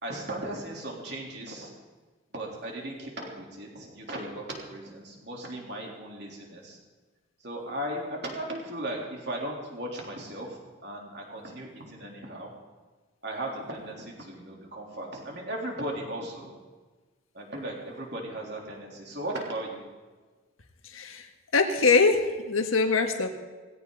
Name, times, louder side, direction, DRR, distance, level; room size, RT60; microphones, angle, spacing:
voice 1, 0.0-1.7 2.3-6.8 7.4-12.5 13.2-16.5 17.3-19.8, right 1 dB, 55° right, -1 dB, 3.5 m, -37 dB
voice 2, 20.8-21.3 21.5-23.3, left 4 dB, 85° left, 5 dB, 1.6 m, -23 dB
18.5 x 16.0 x 4.0 m, 1.3 s
head